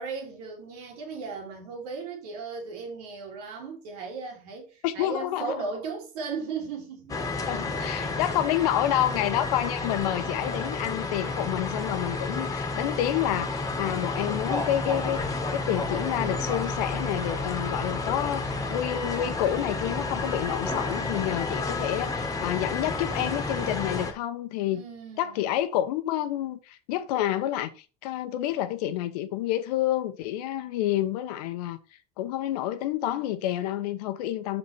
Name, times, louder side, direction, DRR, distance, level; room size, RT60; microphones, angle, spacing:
voice 1, 0.0-7.2 8.0-8.4 24.7-25.4 33.1-33.2, right 4 dB, 90° right, 3.4 m, -36 dB
voice 2, 4.8-5.5 7.5-24.8 25.2-27.7 28.0-31.8 32.2-34.6, left 12 dB, 85° left, 1.0 m, -29 dB
sound 1, 7.1-24.1, left 3 dB, 20° left, 1.6 m, -31 dB
6.6 x 5.9 x 4.4 m
supercardioid pair, 110°, 20 cm